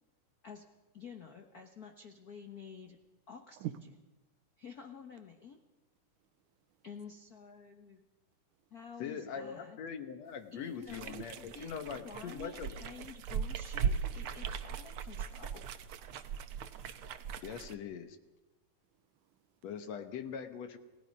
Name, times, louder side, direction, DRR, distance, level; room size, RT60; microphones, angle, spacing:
voice 1, 0.9-3.0 3.3-3.7 4.6-5.6 6.8-8.1 8.7-9.8 10.5-15.7, left 6 dB, 90° left, 0.8 m, -50 dB
voice 2, 9.0-11.4 11.6-12.8 17.4-18.2 19.6-20.8, left 7 dB, 65° left, 2.2 m, -42 dB
sound 1, 10.8-17.7, right 7 dB, 70° right, 1.3 m, -39 dB
voice 3, 16.3-17.3 19.0-19.6, right 13 dB, 90° right, 2.6 m, -46 dB
29.5 x 17.5 x 5.4 m
omnidirectional pair, 3.6 m